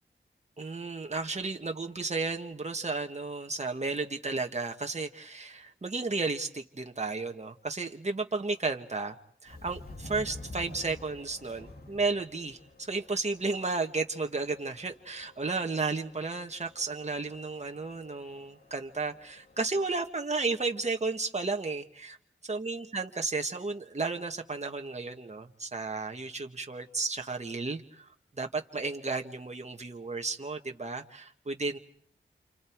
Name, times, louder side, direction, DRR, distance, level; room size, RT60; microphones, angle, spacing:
voice 1, 0.6-9.2 9.4-22.2 22.4-28.1 28.4-31.8, right 3 dB, 35° right, 4 dB, 1.8 m, -33 dB
Subway metro underground, 9.5-20.1, left 2 dB, 55° left, 3.2 m, -50 dB
29.5 x 28.5 x 4.7 m, 0.62 s
wide cardioid pair, 65°, 20 cm